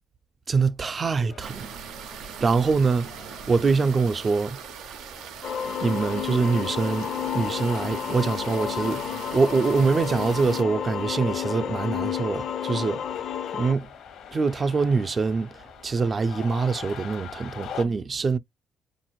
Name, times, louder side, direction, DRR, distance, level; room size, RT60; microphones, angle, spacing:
voice 1, 0.5-1.8 2.4-3.1 3.5-4.6 5.8-7.1 7.3-13.0 13.5-13.9 14.3-15.5 15.8-18.4, right 4 dB, 40° right, 0.4 m, -24 dB
sound 1, 1.3-17.8, left 8 dB, 85° left, 0.8 m, -45 dB
sound 2, 1.4-10.6, right 8 dB, 85° right, 0.5 m, -40 dB
sound 3, 5.4-13.7, left 9 dB, 70° left, 0.5 m, -31 dB
4.1 x 2.5 x 3.0 m
cardioid pair, 90°, 0 cm